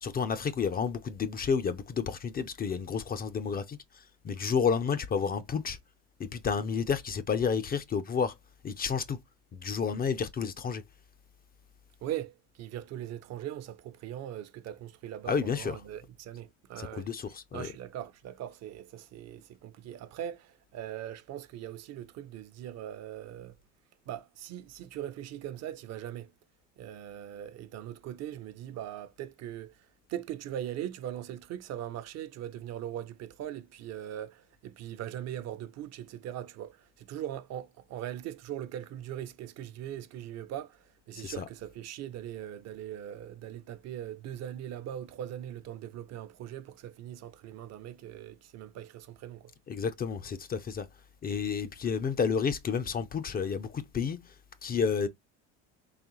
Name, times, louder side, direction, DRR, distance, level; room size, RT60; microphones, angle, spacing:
voice 1, 0.0-5.8 6.2-8.3 8.6-9.2 9.5-10.8 15.3-15.8 16.8-17.7 41.1-41.4 49.7-50.9 51.2-54.2 54.6-55.1, left 6 dB, 25° left, 0.5 m, -31 dB
voice 2, 12.0-17.1 17.5-23.6 24.1-26.3 26.8-49.5, right 11 dB, 50° right, 0.6 m, -40 dB
3.9 x 3.1 x 3.0 m
supercardioid pair, 105°, 35 cm